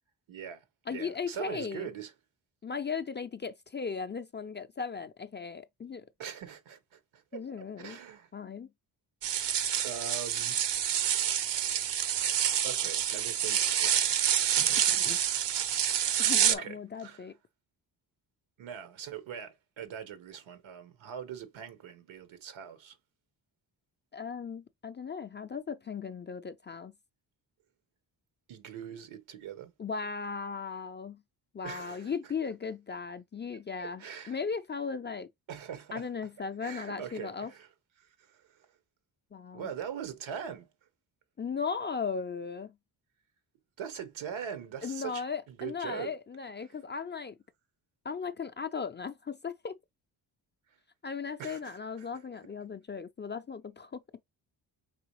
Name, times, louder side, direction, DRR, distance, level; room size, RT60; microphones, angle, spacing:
voice 1, 0.3-0.6 0.9-2.1 6.2-7.4 7.8-8.3 9.8-11.2 12.6-14.1 14.6-15.0 16.5-17.3 18.6-23.0 28.5-29.7 31.6-32.1 33.8-34.4 35.5-36.1 36.6-37.7 38.0-38.6 39.5-40.7 43.8-46.1 51.4-52.1, right 8 dB, 90° right, 1.3 m, -42 dB
voice 2, 0.9-1.9 2.6-6.0 7.3-8.0 8.3-8.7 14.9-15.2 16.2-17.3 24.1-26.9 29.8-31.2 31.5-35.3 35.9-37.5 39.3-39.7 41.4-42.7 44.8-47.4 48.0-49.8 51.0-54.0, left 5 dB, 25° left, 0.3 m, -37 dB
sound 1, 9.2-16.6, right 9 dB, 65° right, 0.8 m, -27 dB
4.8 x 3.2 x 3.0 m
cardioid pair, 85°, 45 cm